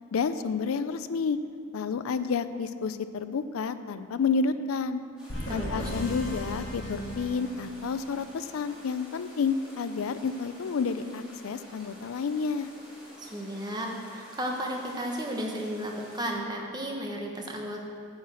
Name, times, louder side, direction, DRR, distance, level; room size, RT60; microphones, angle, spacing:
voice 1, 0.1-1.4 1.7-5.0 5.5-12.7, left 5 dB, 90° left, 12 dB, 0.4 m, -30 dB
sound 1, 5.2-16.3, equal, 5° right, 2.2 m, -50 dB
Success Jingle, 5.3-8.1, equal, 65° left, 1.5 m, -36 dB
voice 2, 5.5-5.9 13.2-17.8, equal, 20° right, 0 dB, 1.1 m, -34 dB
8.9 x 5.2 x 7.6 m, 2.3 s
head